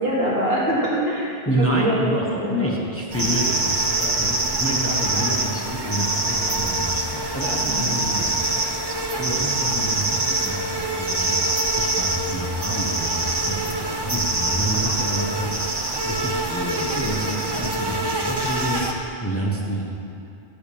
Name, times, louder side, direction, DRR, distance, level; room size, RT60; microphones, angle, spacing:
voice 1, 0.0-2.1 2.4-2.7 3.1-3.5 7.6-8.0 12.2-12.6 13.7-14.1 17.4-17.7 19.5-19.7, equal, 75° right, -7 dB, 2.7 m, -26 dB
voice 2, 1.5-8.8 9.2-11.4 11.8-19.8, right 1 dB, 15° left, -3 dB, 1.0 m, -28 dB
sound 1, 3.1-18.9, right 2 dB, 25° right, 0.7 m, -24 dB
12.0 x 5.1 x 7.0 m, 2.5 s
omnidirectional pair, 1.0 m